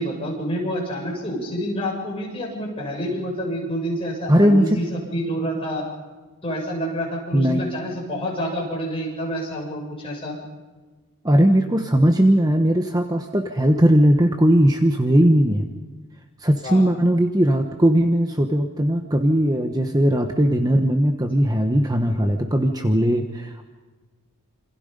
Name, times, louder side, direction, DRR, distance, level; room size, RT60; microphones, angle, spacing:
voice 1, 0.0-5.8 6.4-10.4 16.6-16.8 22.0-22.2, equal, 25° left, -2 dB, 7.3 m, -28 dB
voice 2, 4.3-4.8 7.3-7.7 11.2-15.7 16.4-23.7, equal, 15° right, 5 dB, 1.1 m, -18 dB
27.5 x 26.5 x 5.3 m, 1.3 s
head